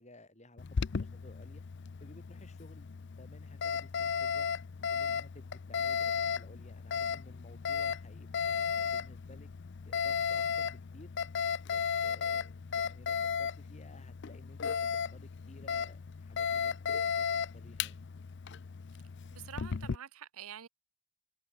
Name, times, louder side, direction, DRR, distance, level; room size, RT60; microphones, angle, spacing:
voice 1, 0.0-1.6 2.0-2.9 3.2-4.5 4.9-9.5 9.8-11.1 11.6-18.0, left 1 dB, 30° left, 7.5 m, -56 dB
Alarm, 0.6-20.0, left 7 dB, 55° left, 0.5 m, -35 dB
voice 2, 19.3-20.7, right 9 dB, 80° right, 0.7 m, -47 dB
head